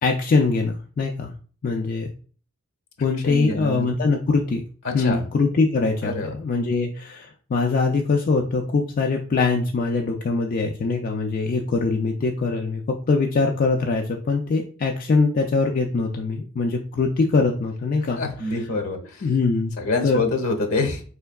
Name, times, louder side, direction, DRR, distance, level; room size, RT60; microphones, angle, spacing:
voice 1, 0.0-1.3 1.6-2.1 3.0-4.6 4.9-18.2 19.2-19.8 20.0-20.2, left 4 dB, 40° left, 2 dB, 0.4 m, -22 dB
voice 2, 3.2-3.9 4.8-5.2 6.0-6.4 18.0-19.3 19.8-21.0, left 3 dB, 75° left, 5 dB, 1.0 m, -26 dB
4.4 x 3.3 x 2.2 m, 0.41 s
head